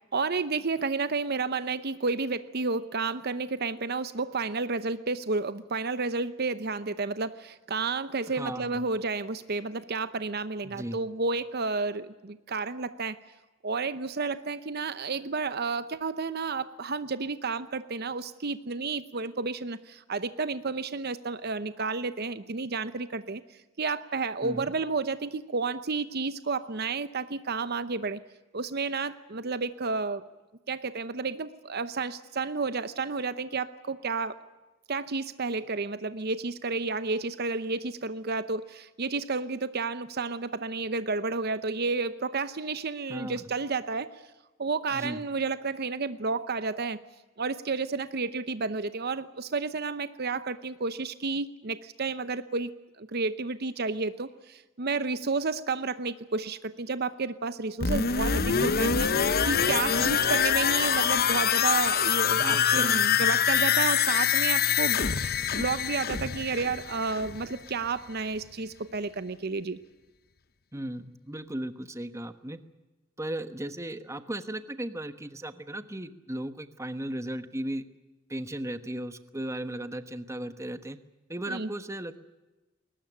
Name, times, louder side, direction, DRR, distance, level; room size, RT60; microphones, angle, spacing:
voice 1, 0.1-13.2 13.6-23.4 23.8-28.2 28.5-30.2 30.7-34.4 34.9-44.2 44.6-47.0 47.4-65.0 65.5-69.8 81.5-81.7, right 4 dB, 50° right, 13 dB, 0.8 m, -31 dB
voice 2, 8.3-8.9 10.6-11.0 24.4-24.7 43.1-43.5 44.9-45.2 60.0-60.1 62.3-63.3 70.7-72.6 73.2-77.8 78.3-81.0 81.3-82.2, right 1 dB, 15° right, 10 dB, 1.2 m, -36 dB
sound 1, 57.8-67.5 67.8-67.9, left 7 dB, 50° left, 0.9 m, -25 dB
22.0 x 19.5 x 10.0 m, 1.1 s
head